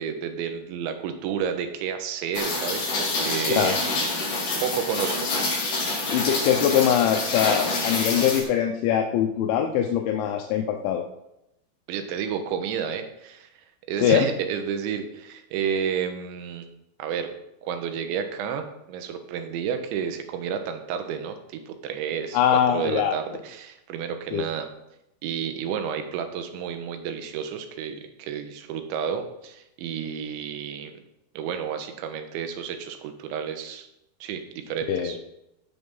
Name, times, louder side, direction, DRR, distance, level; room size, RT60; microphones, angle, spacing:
voice 1, 0.0-3.8 4.3-4.4 4.6-5.3 11.9-13.5 13.9-16.7 17.0-17.3 17.6-21.4 21.7-22.4 22.7-24.7 25.2-31.0 31.4-33.9 34.2-35.2, right 7 dB, 80° right, 7 dB, 3.4 m, -31 dB
Rain, 2.3-8.4, left 3 dB, 50° left, 4.5 m, -27 dB
voice 2, 6.1-11.0 14.0-14.3 22.3-23.2 24.3-24.5 34.9-35.2, left 9 dB, 85° left, 3 dB, 3.2 m, -22 dB
16.5 x 6.0 x 5.5 m, 0.84 s
omnidirectional pair, 5.3 m